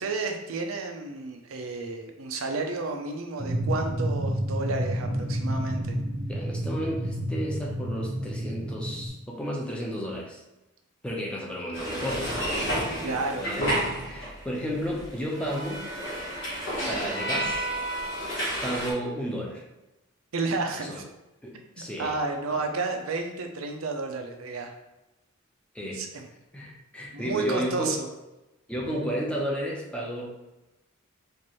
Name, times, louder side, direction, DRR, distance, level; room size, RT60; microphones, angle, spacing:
voice 1, 0.0-6.0 13.0-13.5 20.3-21.0 21.8-24.7 25.9-26.2 27.1-28.1, right 3 dB, 75° right, 4 dB, 0.6 m, -31 dB
sound 1, 3.4-9.1, equal, 30° right, 0.5 m, -30 dB
voice 2, 6.3-10.4 11.0-12.3 12.9-13.7 14.1-15.8 16.9-17.7 18.6-19.6 20.7-21.0 21.4-22.2 22.5-22.6 25.7-26.1 26.5-28.0 28.7-30.2, equal, 5° left, -3 dB, 0.7 m, -32 dB
sound 2, 11.7-14.6 14.8-18.9, right 1 dB, 65° left, 1.2 m, -30 dB
4.4 x 2.6 x 3.1 m, 0.98 s
head